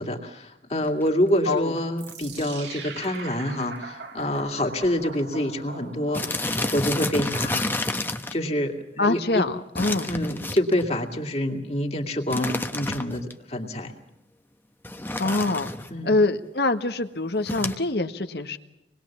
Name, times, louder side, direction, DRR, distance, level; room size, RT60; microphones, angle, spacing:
voice 1, 0.0-7.6 8.3-9.4 10.1-13.9 15.9-16.2, left 1 dB, 35° left, 3 dB, 2.5 m, -27 dB
sound 1, 0.8-1.1 1.8-1.9 2.1-2.2 2.4-2.7 3.0-3.2 3.5-3.6 4.4-4.5 4.7-4.9 5.2-5.3 6.1-8.4 9.8-10.9 12.3-13.3 14.8-15.9 17.5-17.8, left 2 dB, 10° left, 1.1 m, -29 dB
voice 2, 1.5-1.8 9.0-10.1 15.2-15.7 16.0-18.6, left 2 dB, 65° left, 8 dB, 1.4 m, -24 dB
sound 2, 2.0-7.3, right 4 dB, 85° right, 2.8 m, -40 dB
26.5 x 21.0 x 7.3 m, 0.88 s
head